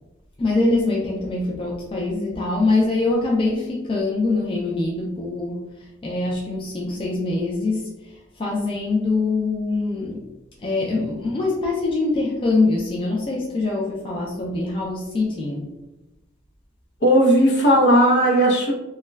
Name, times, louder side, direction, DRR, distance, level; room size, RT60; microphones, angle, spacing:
voice 1, 0.4-5.6 6.0-10.2 10.6-15.7, left 3 dB, 25° left, -3 dB, 0.3 m, -23 dB
voice 2, 17.0-18.7, equal, 65° left, -1 dB, 0.7 m, -16 dB
2.2 x 2.2 x 3.2 m, 1.0 s
head